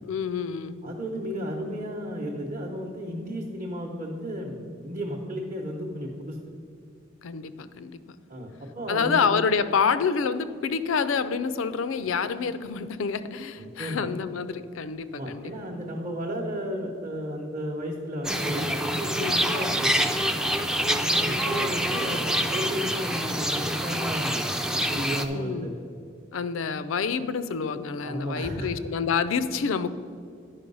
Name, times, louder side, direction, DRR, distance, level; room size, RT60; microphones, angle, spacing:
voice 1, 0.0-0.8 7.2-8.0 8.9-15.5 19.2-19.6 20.8-21.3 25.3-25.7 26.3-29.9, left 5 dB, 90° left, 13 dB, 0.4 m, -28 dB
voice 2, 0.8-6.4 8.3-9.3 13.6-14.1 15.1-20.2 21.1-25.7 28.0-28.7, equal, 35° right, -3 dB, 0.8 m, -33 dB
sound 1, 18.2-25.3, equal, 5° right, 0.3 m, -26 dB
sound 2, 21.0-24.4 24.7-24.8, right 3 dB, 65° right, 0.4 m, -45 dB
9.9 x 5.4 x 5.3 m, 2.3 s
head